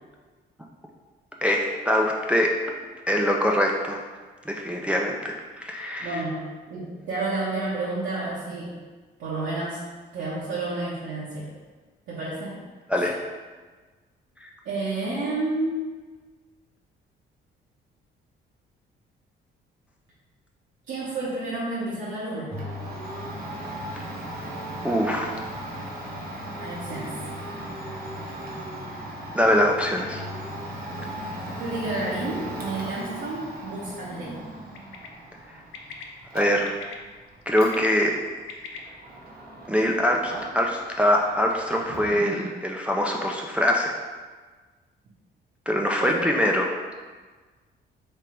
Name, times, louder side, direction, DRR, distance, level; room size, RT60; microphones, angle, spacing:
voice 1, 1.4-2.5 3.1-4.0 4.5-6.2 12.9-13.1 14.4-14.5 24.0-24.1 24.8-25.4 29.3-30.2 36.3-36.8 37.5-38.1 39.7-44.0 45.7-46.7, equal, 5° right, 0 dB, 0.3 m, -23 dB
voice 2, 6.0-8.8 9.2-9.8 10.1-11.5 12.1-12.6 13.0-13.1 14.6-15.9 20.9-22.5 26.6-27.1 31.6-34.5 42.1-42.3 46.0-46.1, right 2 dB, 80° right, -8 dB, 1.0 m, -30 dB
Domestic sounds home sounds, 22.5-40.8 41.1-42.2, right 1 dB, 50° right, 0.9 m, -37 dB
Bird, 34.7-35.1 35.7-36.0 36.6-36.9 37.4-38.8, left 6 dB, 85° left, 0.5 m, -39 dB
3.4 x 2.4 x 4.3 m, 1.4 s
cardioid pair, 90°, 20 cm